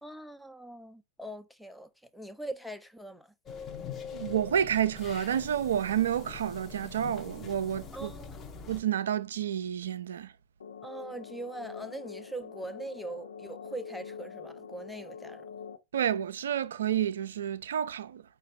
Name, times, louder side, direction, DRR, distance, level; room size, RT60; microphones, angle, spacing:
voice 1, 0.0-3.3 7.9-8.4 10.8-15.5, right 2 dB, ahead, 0.5 m, -42 dB
sound 1, 3.5-8.8, left 6 dB, 25° left, 0.8 m, -43 dB
voice 2, 4.1-8.1 8.7-10.3 15.9-18.2, right 9 dB, 65° right, 0.3 m, -30 dB
sound 2, 10.6-15.8, left 6 dB, 70° left, 0.4 m, -44 dB
5.6 x 2.3 x 3.3 m
figure-of-eight pair, 90°, 0 cm